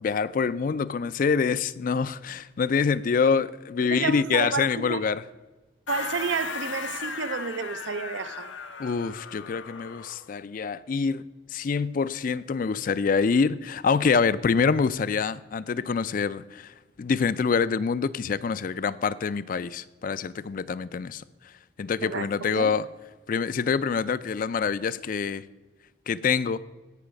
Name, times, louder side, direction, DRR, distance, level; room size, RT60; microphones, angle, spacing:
voice 1, 0.0-5.2 8.8-11.2 11.5-16.7 17.0-21.2 21.8-22.9 23.3-25.4 26.1-26.6, left 5 dB, 45° left, 0.4 m, -26 dB
voice 2, 3.8-5.1 5.9-8.5 22.0-22.8, right 5 dB, 80° right, 0.5 m, -31 dB
sound 1, 5.9-10.3, left 6 dB, 80° left, 0.7 m, -37 dB
17.0 x 5.6 x 5.1 m
head